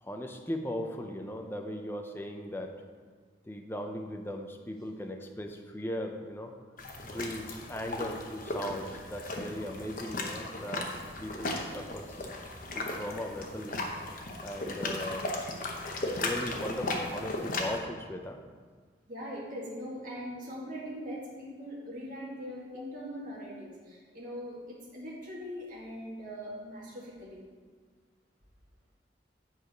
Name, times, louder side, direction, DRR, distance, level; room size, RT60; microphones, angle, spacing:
voice 1, 0.0-2.8 3.5-6.5 7.0-10.9 11.2-12.3 12.7-13.8 14.4-15.3 16.0-18.4 22.7-22.9, left 1 dB, 15° left, 4 dB, 0.6 m, -38 dB
sound 1, 6.8-17.8, left 2 dB, 50° left, 1.0 m, -36 dB
voice 2, 19.1-27.5, equal, 50° right, -5 dB, 2.2 m, -41 dB
8.8 x 4.8 x 5.1 m, 1.5 s
head